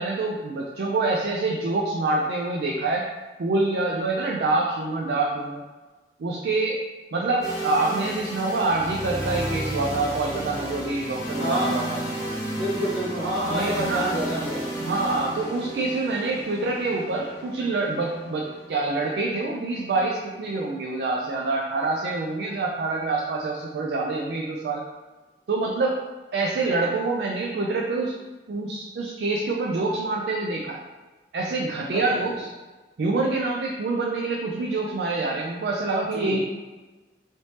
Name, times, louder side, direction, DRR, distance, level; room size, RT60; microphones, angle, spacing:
voice 1, 0.0-3.1 3.4-5.6 6.2-6.8 7.1-12.0 13.5-14.1 14.8-24.8 25.5-26.0 26.3-28.2 28.5-30.8 31.3-32.5 33.0-36.4, right 3 dB, 65° right, -2 dB, 0.3 m, -26 dB
sound 1, 7.4-21.3, right 1 dB, 15° left, 0.7 m, -33 dB
voice 2, 11.4-11.7 12.5-14.7 31.9-32.2 36.1-36.3, right 1 dB, 80° right, -7 dB, 1.4 m, -28 dB
3.3 x 3.1 x 2.7 m, 1.3 s
head